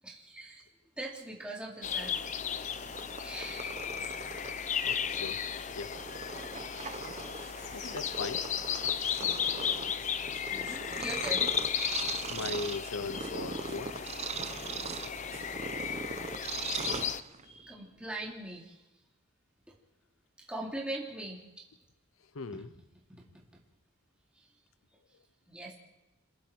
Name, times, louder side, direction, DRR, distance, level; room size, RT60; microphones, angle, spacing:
voice 1, 0.0-0.7 1.0-2.2 3.2-3.7 5.0-5.1 5.6-5.7 9.5-11.5 14.7-15.1 17.4-18.8 19.7-19.8 20.4-21.6 22.5-23.6 24.3-24.6 25.1-25.2 25.5-25.7, right 1 dB, 5° right, 3.0 m, -42 dB
sound 1, 1.8-17.2, left 8 dB, 35° left, 0.6 m, -35 dB
Purr, 2.4-17.6, right 5 dB, 30° right, 0.8 m, -41 dB
voice 2, 4.5-5.4 5.7-6.0 7.7-8.5 12.3-14.1 22.3-22.7, left 4 dB, 85° left, 0.7 m, -39 dB
sound 2, 5.0-18.4, equal, 70° right, 4.1 m, -64 dB
27.0 x 21.0 x 4.5 m
head